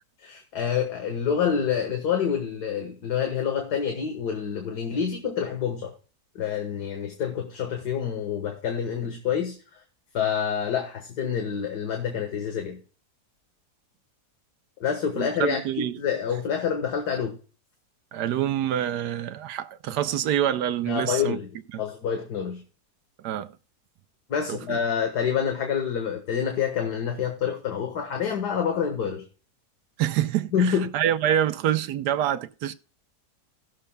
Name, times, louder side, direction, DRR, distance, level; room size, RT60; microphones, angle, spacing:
voice 1, 0.2-5.9 6.4-9.6 10.1-12.8 14.8-17.4 20.9-21.5 21.8-22.6 24.3-29.2 30.5-30.9, left 7 dB, 75° left, 1.9 m, -27 dB
voice 2, 15.2-16.0 18.1-21.4 21.7-21.8 23.2-23.5 24.5-24.8 30.0-32.7, right 11 dB, 80° right, 1.2 m, -26 dB
19.0 x 6.7 x 2.2 m
omnidirectional pair, 1.8 m